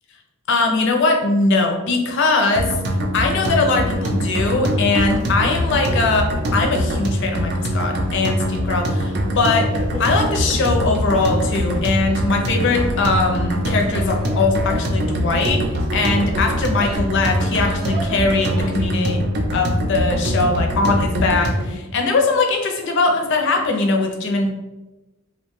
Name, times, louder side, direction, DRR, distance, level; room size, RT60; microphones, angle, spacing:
voice 1, 0.5-2.7 3.1-9.7 10.0-15.6 15.9-19.2 19.5-24.5, left 3 dB, 55° left, 3 dB, 0.4 m, -20 dB
sound 1, 2.5-21.7, equal, 50° right, 0.4 m, -23 dB
sound 2, 3.7-18.9, equal, 25° right, 0.7 m, -34 dB
2.5 x 2.1 x 3.0 m, 1.1 s
head